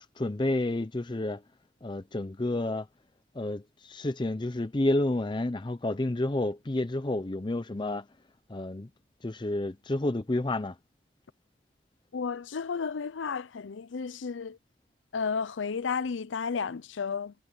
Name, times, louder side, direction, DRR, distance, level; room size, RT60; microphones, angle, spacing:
voice 1, 0.0-1.4 1.8-2.9 3.3-8.1 8.5-8.9 9.2-10.8, left 2 dB, 25° left, 0.5 m, -30 dB
voice 2, 12.1-14.6 15.1-17.3, left 5 dB, 75° left, 0.5 m, -32 dB
head